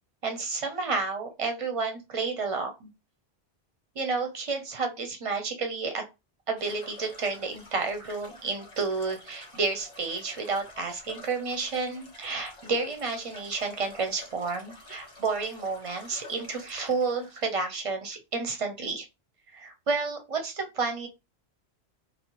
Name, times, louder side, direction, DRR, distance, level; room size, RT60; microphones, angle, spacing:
voice 1, 0.2-2.9 4.0-6.0 6.5-19.1 19.5-21.1, right 4 dB, 40° right, 5 dB, 0.5 m, -31 dB
sound 1, 6.6-17.6, left 1 dB, 35° left, 0.8 m, -49 dB
3.1 x 2.1 x 3.0 m, 0.26 s
omnidirectional pair, 1.1 m